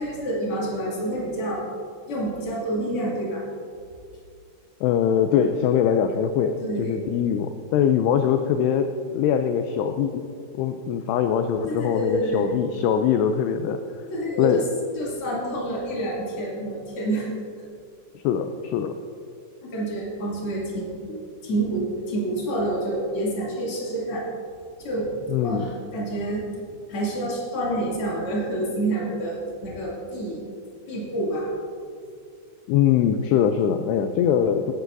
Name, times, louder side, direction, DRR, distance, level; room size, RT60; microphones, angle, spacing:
voice 1, 0.0-1.6 2.1-3.4 6.6-7.0 11.7-12.6 14.1-14.7 14.9-17.3 19.6-24.2 24.8-25.1 25.4-26.5 26.9-29.4 29.6-30.4 30.9-31.5, right 1 dB, 35° left, -5 dB, 2.9 m, -28 dB
voice 2, 4.8-10.2 10.5-13.8 14.4-14.6 18.2-18.9 25.3-25.7 32.7-34.7, left 8 dB, 85° left, 7 dB, 2.5 m, -22 dB
17.5 x 11.0 x 2.6 m, 2.3 s
omnidirectional pair, 5.1 m